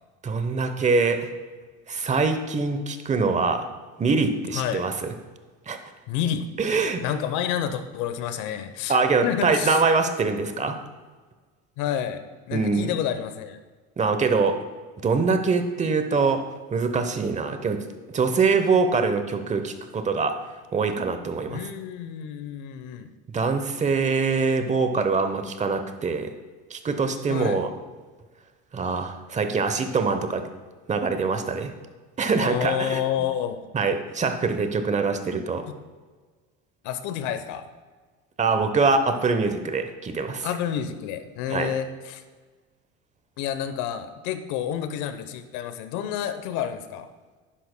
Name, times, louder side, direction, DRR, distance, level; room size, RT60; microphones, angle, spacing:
voice 1, 0.2-1.3 1.9-3.6 4.0-5.1 5.7-5.8 6.6-7.0 8.9-10.8 12.5-12.9 14.0-14.6 15.0-16.4 16.7-17.8 18.1-20.3 20.7-21.6 23.3-26.3 26.7-27.7 28.7-30.4 30.9-31.7 32.2-33.0 33.7-35.6 38.4-40.5 41.5-41.7, right 4 dB, 25° right, 8 dB, 0.9 m, -24 dB
voice 2, 6.1-6.5 7.0-9.0 9.2-9.8 11.8-12.2 12.5-13.6 21.5-23.1 27.3-27.6 32.4-33.6 36.8-37.7 40.4-42.2 43.4-47.1, left 9 dB, 75° left, 10 dB, 0.9 m, -29 dB
11.0 x 10.0 x 2.2 m, 1.4 s
supercardioid pair, 110°, 30 cm